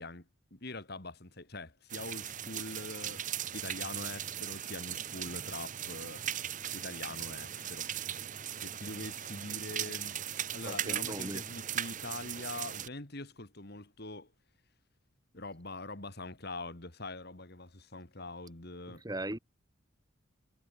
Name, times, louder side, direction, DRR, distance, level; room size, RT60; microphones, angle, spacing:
voice 1, 0.0-3.2 3.5-6.2 6.7-7.9 8.5-10.2 10.5-14.3 15.3-19.0, left 2 dB, 50° left, 2.7 m, -44 dB
sound 1, 1.9-12.9, right 10 dB, 40° right, 0.9 m, -38 dB
voice 2, 10.6-11.4 18.9-19.4, right 1 dB, 20° right, 2.0 m, -39 dB
head